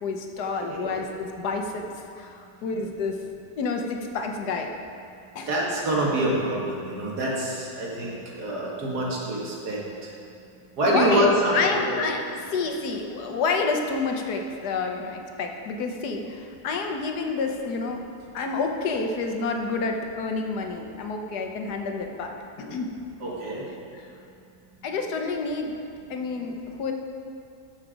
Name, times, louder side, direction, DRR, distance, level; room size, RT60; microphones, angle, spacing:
voice 1, 0.0-1.9 2.2-3.2 3.6-4.7 5.3-5.5 10.8-18.1 18.3-22.9 23.9-24.0 24.8-25.7 26.1-26.9, left 4 dB, 85° left, 3 dB, 1.5 m, -29 dB
voice 2, 0.6-0.9 5.5-10.1 10.8-12.0 23.2-23.6, right 1 dB, 85° right, -4 dB, 2.4 m, -26 dB
13.5 x 6.0 x 5.1 m, 2.5 s
omnidirectional pair, 1.7 m